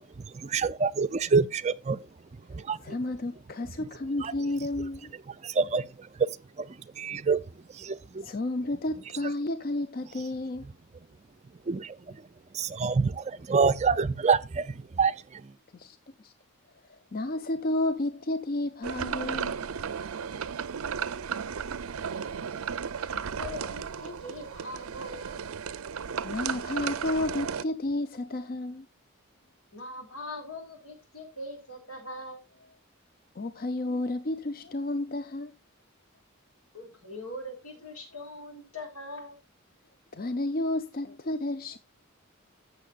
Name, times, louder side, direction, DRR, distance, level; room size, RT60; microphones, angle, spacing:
voice 1, 0.3-2.0 2.5-2.8 4.2-4.3 5.4-6.3 6.6-7.4 7.7-8.3 11.7-12.2 12.5-15.5, right 5 dB, 30° right, 0.4 m, -27 dB
voice 2, 2.8-5.1 8.2-10.7 15.7-16.3 17.1-19.6 22.9-23.2 26.2-28.9 33.3-35.5 40.1-41.8, left 2 dB, 45° left, 0.6 m, -31 dB
sound 1, 18.8-27.6, right 7 dB, 85° right, 0.6 m, -34 dB
voice 3, 23.4-25.4 29.7-32.4 36.7-39.4, left 1 dB, 85° left, 4.0 m, -41 dB
15.0 x 6.6 x 2.4 m
head